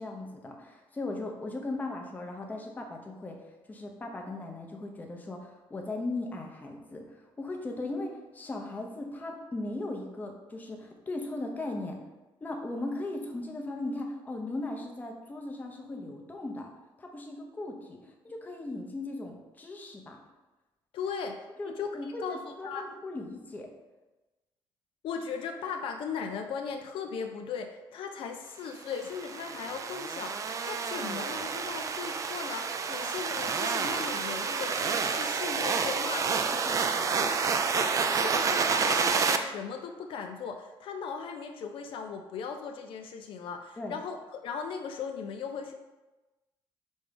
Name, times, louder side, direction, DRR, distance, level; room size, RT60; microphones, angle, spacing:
voice 1, 0.0-3.4 3.7-12.0 12.4-16.7 17.0-20.2 21.6-23.7 36.6-37.1 43.8-44.0, left 2 dB, 15° left, 2 dB, 0.8 m, -38 dB
voice 2, 20.9-22.4 22.6-22.8 25.0-36.6 37.2-45.7, left 6 dB, 65° left, 4 dB, 0.6 m, -38 dB
sound 1, 28.9-39.4, right 5 dB, 35° right, 0.4 m, -29 dB
5.3 x 3.5 x 5.1 m, 1.1 s
cardioid pair, 150°, 10 cm